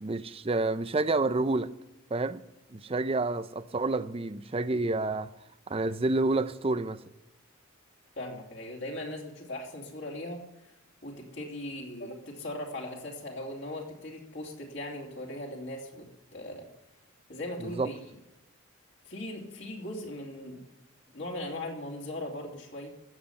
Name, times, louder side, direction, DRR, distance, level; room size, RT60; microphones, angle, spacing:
voice 1, 0.0-1.7 2.1-2.4 2.7-5.3 5.7-7.0 17.8-17.9, right 2 dB, 25° right, 0.5 m, -29 dB
voice 2, 8.2-10.7 11.0-16.7 17.3-18.1 19.0-20.6 21.1-22.9, left 1 dB, 60° left, 3.0 m, -39 dB
15.5 x 7.4 x 9.5 m
head